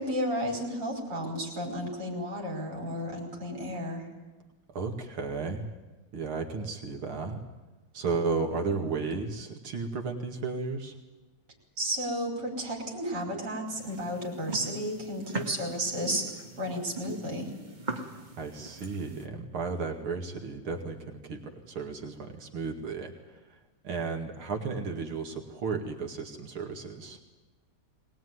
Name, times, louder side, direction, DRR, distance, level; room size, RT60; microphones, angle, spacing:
voice 1, 0.0-4.1 11.8-17.5, equal, 50° right, -1 dB, 5.7 m, -33 dB
voice 2, 4.7-5.7 6.1-7.4 7.9-10.9 18.4-21.4 21.7-23.1 23.8-27.2, right 4 dB, 75° right, 3 dB, 3.1 m, -33 dB
sound 1, 13.7-19.3, right 3 dB, 20° right, 1.7 m, -41 dB
23.0 x 19.5 x 9.6 m, 1.2 s
omnidirectional pair, 2.4 m